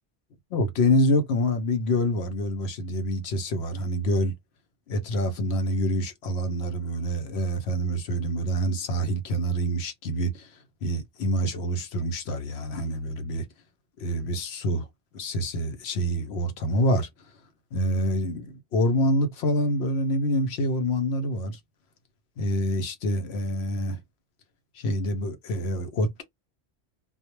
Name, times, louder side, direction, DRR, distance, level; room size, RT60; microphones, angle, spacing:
voice 1, 0.5-4.3 4.9-10.5 10.8-13.4 14.0-14.9 15.1-17.1 17.7-21.6 22.4-24.0 24.8-26.2, equal, 75° left, 0.9 m, -26 dB
2.3 x 2.1 x 2.9 m
omnidirectional pair, 1.1 m